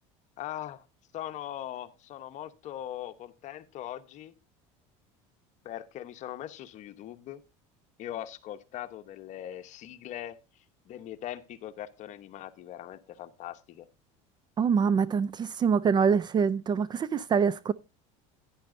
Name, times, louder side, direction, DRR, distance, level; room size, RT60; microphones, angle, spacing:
voice 1, 0.4-0.8 1.1-4.3 5.6-7.4 8.0-10.4 10.9-13.9, left 12 dB, 50° left, 1.0 m, -40 dB
voice 2, 14.6-17.7, right 6 dB, 25° right, 0.4 m, -25 dB
11.5 x 9.8 x 2.6 m
supercardioid pair, 120°, 16 cm